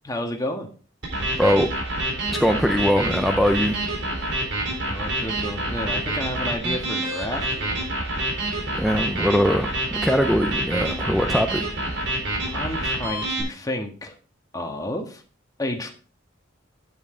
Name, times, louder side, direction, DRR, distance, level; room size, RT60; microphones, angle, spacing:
voice 1, 0.0-0.7 4.9-7.8 12.5-14.1 14.5-15.2 15.6-15.9, left 1 dB, 20° left, 3 dB, 1.4 m, -31 dB
sound 1, 1.0-13.4, right 1 dB, 65° right, 3.8 m, -27 dB
voice 2, 1.4-1.7 2.4-3.8 8.8-11.6, equal, ahead, 6 dB, 0.5 m, -21 dB
8.9 x 8.5 x 3.7 m, 0.39 s
head